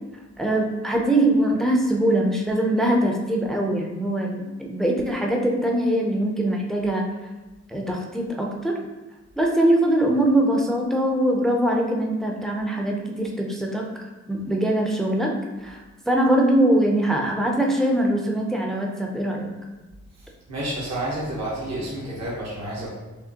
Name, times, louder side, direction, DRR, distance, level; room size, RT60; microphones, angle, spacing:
voice 1, 0.4-7.0 7.7-8.8 9.4-13.8 14.3-15.3 15.6-19.5, right 1 dB, ahead, 0 dB, 0.5 m, -22 dB
voice 2, 20.2-22.9, right 1 dB, 65° right, -6 dB, 1.1 m, -30 dB
5.0 x 3.0 x 2.8 m, 1.2 s
wide cardioid pair, 125°, 29 cm